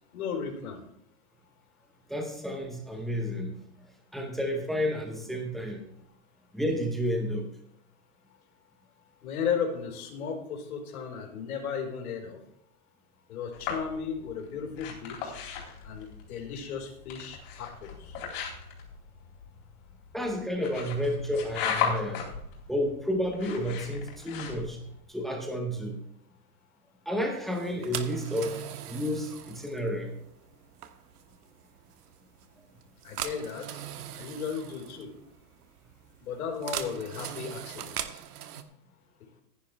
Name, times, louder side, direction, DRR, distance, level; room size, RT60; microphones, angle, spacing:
voice 1, 0.1-0.8 9.2-12.4 13.3-15.4 15.8-18.1 33.0-33.8 34.1-35.1 36.2-37.8 38.1-38.2, left 6 dB, 70° left, 1 dB, 4.5 m, -35 dB
voice 2, 2.1-3.6 4.1-5.8 6.5-7.5 20.1-22.2 22.7-24.8 25.1-26.0 27.1-30.1, equal, ahead, 2 dB, 0.7 m, -31 dB
sound 1, 13.5-25.0, left 7 dB, 35° left, 3.8 m, -37 dB
sound 2, 27.5-38.6, right 10 dB, 85° right, 1.4 m, -41 dB
15.5 x 10.0 x 3.3 m, 0.74 s
supercardioid pair, 175°, 45 cm